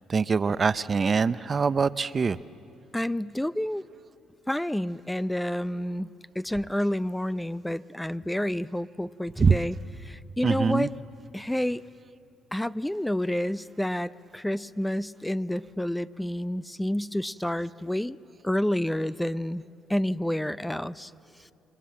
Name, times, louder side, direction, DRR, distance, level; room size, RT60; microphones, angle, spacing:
voice 1, 0.1-2.4 9.4-9.6 10.4-10.9, right 5 dB, 40° right, 15 dB, 0.6 m, -23 dB
voice 2, 2.9-3.8 4.5-6.1 6.4-9.7 10.0-10.9 11.3-11.8 12.5-18.2 18.4-19.6 19.9-21.1, left 1 dB, 5° left, 15 dB, 0.6 m, -29 dB
28.5 x 23.0 x 7.5 m, 2.7 s
supercardioid pair, 60°, 0 cm